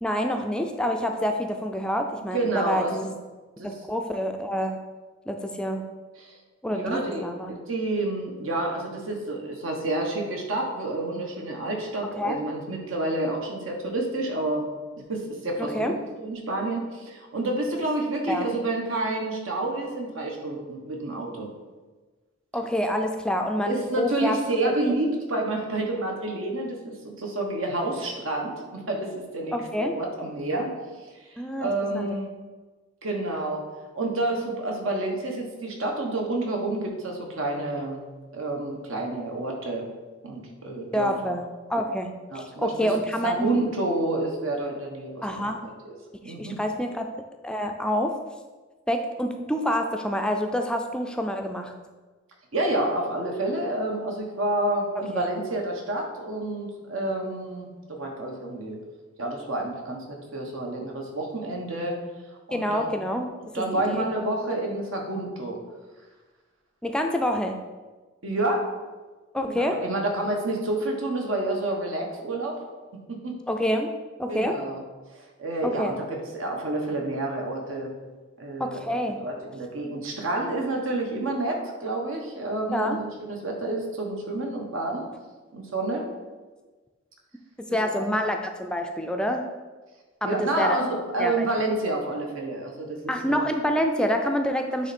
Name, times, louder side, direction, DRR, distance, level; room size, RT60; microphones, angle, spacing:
voice 1, 0.0-3.1 3.6-4.8 5.3-5.8 6.6-7.6 12.2-12.4 15.6-16.0 18.3-18.5 22.5-24.4 29.5-30.0 31.4-32.2 40.9-42.1 42.3-43.5 45.2-45.7 46.2-47.1 47.4-48.2 48.9-51.7 55.0-55.3 62.5-63.3 63.7-64.0 66.8-67.5 69.3-69.8 73.5-73.9 74.2-74.6 75.6-75.9 78.6-79.2 82.7-83.0 87.7-89.5 90.2-90.8 91.2-91.5 93.1-94.9, equal, 5° left, 4 dB, 0.3 m, -27 dB
voice 2, 2.3-2.9 3.6-3.7 6.2-6.4 6.7-7.2 7.5-14.7 15.1-21.5 23.6-30.7 31.3-32.3 33.0-33.6 33.9-38.0 38.3-39.9 40.2-41.3 42.3-42.9 43.2-46.0 46.2-46.6 52.5-58.8 59.2-62.0 62.5-62.9 63.5-65.6 68.2-68.7 69.5-72.6 72.9-73.4 74.3-74.8 75.1-77.9 78.4-85.1 85.5-86.1 87.7-88.1 90.2-93.4, right 2 dB, 85° right, 1 dB, 1.2 m, -29 dB
8.8 x 3.3 x 4.2 m, 1.3 s
head